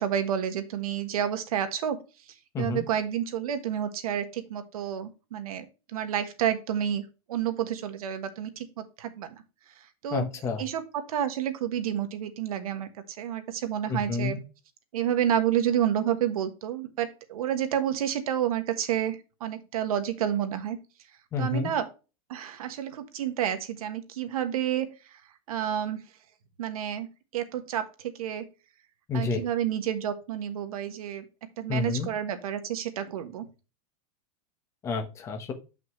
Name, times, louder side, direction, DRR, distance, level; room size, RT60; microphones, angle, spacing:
voice 1, 0.0-2.0 2.6-7.0 7.3-9.3 10.0-10.3 10.6-12.9 13.2-14.4 14.9-20.8 21.4-21.9 22.3-24.9 25.5-26.0 26.6-27.1 27.3-28.4 29.1-31.2 31.6-33.4, right 10 dB, 75° right, 9 dB, 1.4 m, -29 dB
voice 2, 2.5-2.9 10.1-10.6 13.9-14.4 21.3-21.7 29.1-29.4 31.7-32.1 34.8-35.5, left 3 dB, 15° left, 4 dB, 1.1 m, -29 dB
7.5 x 5.9 x 3.1 m, 0.31 s
supercardioid pair, 180°, 19 cm